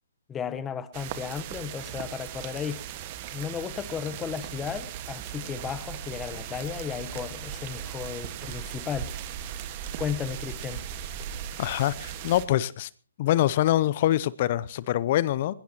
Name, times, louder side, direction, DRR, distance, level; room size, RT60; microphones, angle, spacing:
voice 1, 0.3-2.8 3.3-9.1 10.0-10.9, left 7 dB, 15° left, 1.0 m, -34 dB
sound 1, 0.9-12.5, right 9 dB, 35° right, 1.6 m, -38 dB
voice 2, 11.6-12.9 13.2-15.5, left 13 dB, 40° left, 0.6 m, -24 dB
21.0 x 20.0 x 3.0 m
hypercardioid pair, 145°, 0 cm